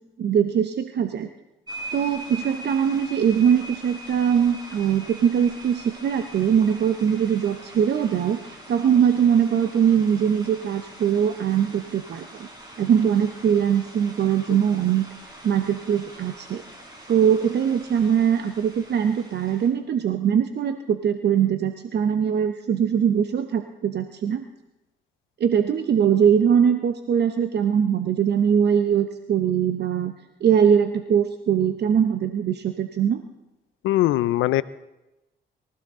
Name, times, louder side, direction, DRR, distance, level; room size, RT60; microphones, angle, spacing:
voice 1, 0.2-1.3 1.9-12.5 12.8-15.1 15.4-16.6 17.1-24.4 25.4-30.1 30.4-33.2, right 8 dB, 55° right, 8 dB, 0.9 m, -21 dB
sound 1, 1.7-19.7, right 1 dB, 20° right, 5.1 m, -43 dB
voice 2, 33.8-34.6, left 15 dB, 85° left, 17 dB, 0.5 m, -21 dB
23.5 x 15.0 x 3.7 m, 1.0 s
cardioid pair, 90°, 20 cm